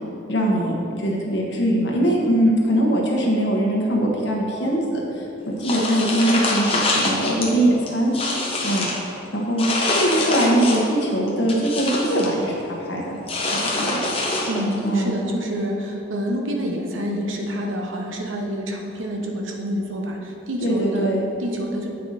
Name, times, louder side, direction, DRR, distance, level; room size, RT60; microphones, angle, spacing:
voice 1, 0.3-8.1 8.6-8.9 9.3-13.2 13.5-14.1 14.8-15.1 20.6-21.3, right 1 dB, 65° left, -2 dB, 1.3 m, -22 dB
sound 1, 5.6-7.5 7.9-9.0 9.6-10.9 11.3-12.3 13.3-14.8, left 2 dB, 30° left, 0.9 m, -24 dB
voice 2, 14.5-21.9, equal, 90° right, 1 dB, 1.0 m, -27 dB
7.8 x 5.6 x 4.2 m, 2.8 s
head